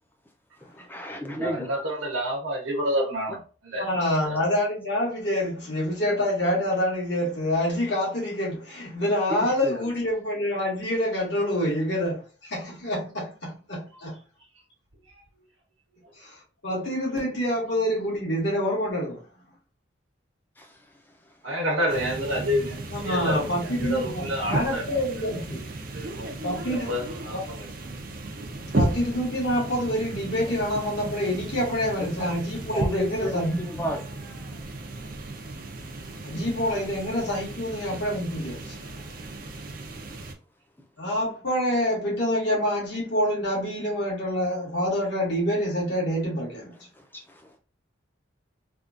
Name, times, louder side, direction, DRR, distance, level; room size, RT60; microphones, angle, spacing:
voice 1, 0.8-1.7 9.6-9.8 20.6-20.7 32.7-34.5 47.1-47.2, equal, 10° left, 0.6 m, -32 dB
voice 2, 1.3-3.9 4.2-4.4 21.4-24.8 25.9-26.3 26.7-27.7, equal, 90° right, 1.0 m, -29 dB
voice 3, 3.8-14.2 16.2-19.2 22.9-25.6 26.4-26.9 27.3-27.4 28.6-33.9 36.2-38.8 41.0-46.7, equal, 60° left, 1.7 m, -27 dB
sound 1, 21.9-40.3, right 2 dB, 45° right, 0.5 m, -35 dB
3.5 x 2.4 x 2.5 m
head